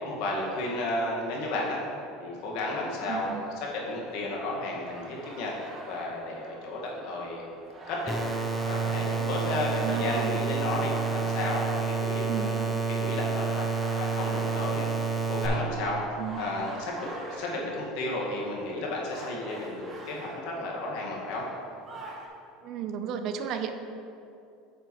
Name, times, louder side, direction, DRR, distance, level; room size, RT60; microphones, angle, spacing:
voice 1, 0.0-1.8 2.2-7.4 7.9-8.2 8.7-14.9 15.3-16.0 16.3-21.5, left 2 dB, 65° left, -2 dB, 1.7 m, -33 dB
sound 1, 2.8-22.3, right 2 dB, 25° right, 1.6 m, -47 dB
voice 2, 3.1-3.4 9.8-10.4 12.3-12.6 16.2-16.5 22.6-23.7, right 8 dB, 55° right, 8 dB, 0.6 m, -34 dB
sound 2, 8.1-15.5, right 5 dB, ahead, 1.0 m, -29 dB
8.7 x 6.7 x 3.1 m, 2.7 s
supercardioid pair, 110°, 0 cm